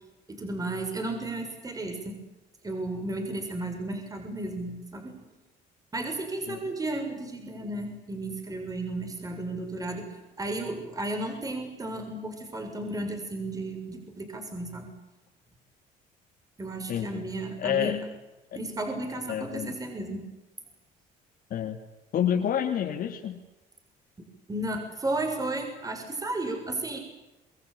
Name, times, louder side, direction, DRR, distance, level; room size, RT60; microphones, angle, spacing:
voice 1, 0.3-2.2 2.6-5.2 5.9-10.1 10.4-14.9 16.6-18.0 18.5-20.2 24.2-27.0, right 2 dB, 20° right, 4 dB, 7.1 m, -33 dB
voice 2, 16.9-17.3 17.6-18.0 19.3-19.8 21.5-21.8 22.1-23.4, left 9 dB, 60° left, 2 dB, 3.0 m, -28 dB
27.5 x 23.5 x 8.7 m, 1.0 s
cardioid pair, 110°, 17 cm